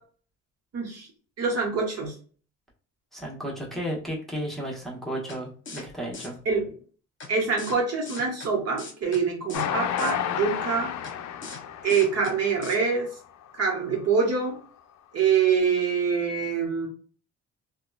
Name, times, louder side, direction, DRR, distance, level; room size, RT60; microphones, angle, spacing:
voice 1, 0.7-1.1 1.4-2.1 6.4-6.6 7.3-10.9 11.8-13.1 13.5-14.6 15.1-16.9, right 5 dB, 55° right, 1 dB, 1.0 m, -25 dB
voice 2, 3.1-6.4, equal, ahead, -4 dB, 1.1 m, -33 dB
sound 1, 5.3-5.4 5.7-5.8 6.1-6.3 7.2-7.3 7.6-7.8 8.1-8.5 8.8-9.2 9.5-9.7 10.0-10.1 11.0-11.1 11.4-11.6 11.9-12.3 12.6-12.8, left 4 dB, 40° left, 0.9 m, -39 dB
Train, 9.5-13.0 13.5-13.6 13.9-14.0, left 9 dB, 65° left, 0.5 m, -31 dB
2.8 x 2.3 x 2.2 m, 0.41 s
cardioid pair, 90°, 30 cm